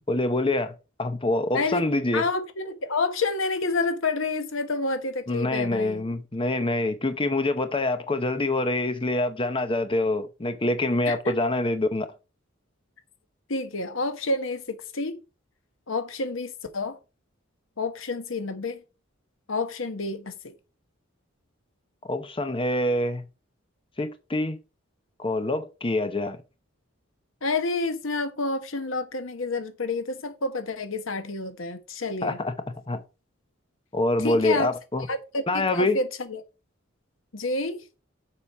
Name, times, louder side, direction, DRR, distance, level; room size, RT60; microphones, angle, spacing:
voice 1, 0.1-2.3 5.3-12.1 22.0-23.2 24.0-24.6 25.2-26.4 32.2-32.5 32.9-33.0 33.9-35.1 35.5-36.0, left 2 dB, 25° left, 0.8 m, -25 dB
voice 2, 1.5-6.0 11.1-11.3 13.5-15.2 15.9-17.0 17.8-18.8 19.5-20.5 27.4-32.4 34.2-34.7 35.1-36.4 37.3-37.8, left 3 dB, 75° left, 1.2 m, -29 dB
7.1 x 5.2 x 5.4 m
head